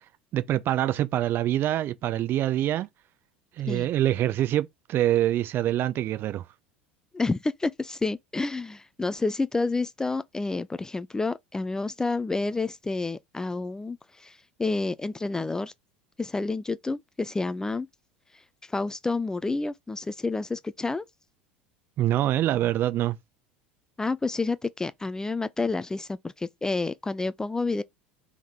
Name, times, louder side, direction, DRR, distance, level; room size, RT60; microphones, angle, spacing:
voice 1, 0.3-2.9 3.6-6.4 22.0-23.2, right 13 dB, 40° right, 0.6 m, -25 dB
voice 2, 7.1-15.7 16.2-17.9 18.7-21.0 24.0-27.8, left 3 dB, 10° left, 0.4 m, -29 dB
3.6 x 3.5 x 4.2 m
figure-of-eight pair, 75°, 6 cm